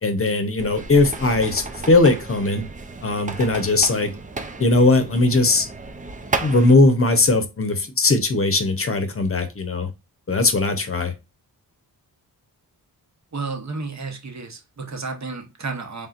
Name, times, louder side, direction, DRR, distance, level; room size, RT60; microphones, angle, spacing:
voice 1, 0.0-2.6 3.0-4.1 4.6-5.7 6.4-9.9 10.3-11.1, left 2 dB, 35° left, 0.8 m, -19 dB
sound 1, 0.6-6.7, right 3 dB, 20° right, 0.4 m, -33 dB
voice 2, 13.3-16.1, right 4 dB, 45° right, 1.1 m, -32 dB
4.2 x 3.5 x 2.5 m
wide cardioid pair, 95°, 39 cm